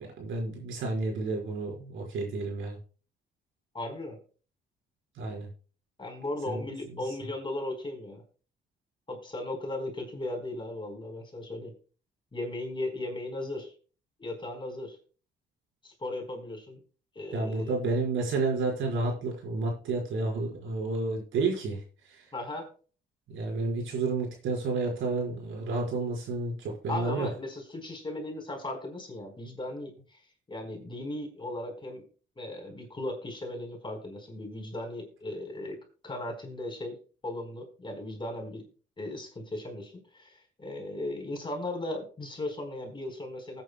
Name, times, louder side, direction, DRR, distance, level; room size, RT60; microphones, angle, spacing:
voice 1, 0.0-2.8 5.1-5.5 6.5-6.6 17.3-22.3 23.3-27.3, right 3 dB, 80° right, -1 dB, 4.5 m, -31 dB
voice 2, 3.7-4.2 6.0-8.2 9.1-11.7 12.3-13.7 14.2-15.0 15.8-16.8 17.1-17.8 22.3-22.7 26.9-30.2 30.5-32.0 32.4-35.8 36.0-37.0 37.2-38.6 39.0-43.6, left 1 dB, 25° left, 2 dB, 4.1 m, -37 dB
19.5 x 8.9 x 2.2 m, 0.38 s
cardioid pair, 90°, 20 cm